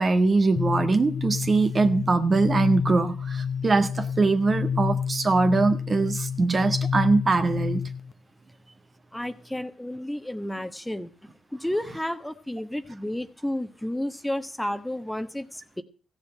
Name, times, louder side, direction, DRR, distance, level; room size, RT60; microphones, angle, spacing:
voice 1, 0.0-7.8, right 3 dB, 40° right, 1.6 m, -22 dB
sound 1, 0.6-8.1, left 7 dB, 45° left, 0.7 m, -29 dB
voice 2, 9.1-11.1 11.5-15.8, left 1 dB, 5° left, 1.3 m, -31 dB
15.5 x 7.1 x 7.5 m
supercardioid pair, 60°, 0 cm